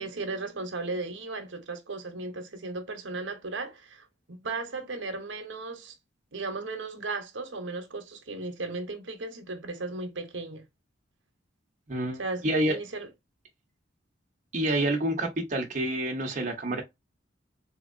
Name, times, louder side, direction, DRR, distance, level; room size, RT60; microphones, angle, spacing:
voice 1, 0.0-5.9 6.3-10.6 12.1-13.1 14.8-14.9, right 3 dB, 75° right, 0.9 m, -36 dB
voice 2, 11.9-12.8 14.5-16.8, right 1 dB, 40° right, 0.8 m, -28 dB
3.6 x 2.8 x 2.6 m
head